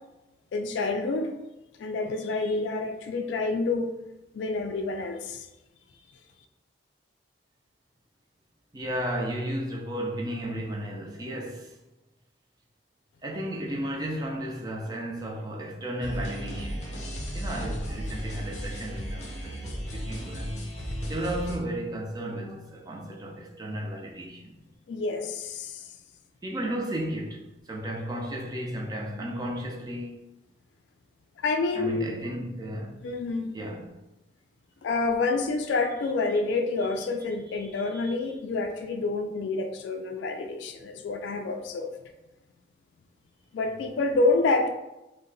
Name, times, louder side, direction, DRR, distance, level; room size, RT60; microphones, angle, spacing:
voice 1, 0.5-1.3 1.8-3.9 4.3-5.5 24.9-25.8 31.4-32.1 33.0-33.6 34.8-41.9 43.5-44.7, left 3 dB, 70° left, 0.3 m, -28 dB
voice 2, 8.7-11.8 13.2-16.9 17.3-20.6 21.1-24.6 26.4-30.2 31.7-33.1 33.5-33.9 37.5-38.1, right 1 dB, 20° right, 0.4 m, -34 dB
sound 1, 16.0-21.6, equal, 40° left, 0.6 m, -35 dB
2.7 x 2.1 x 3.8 m
head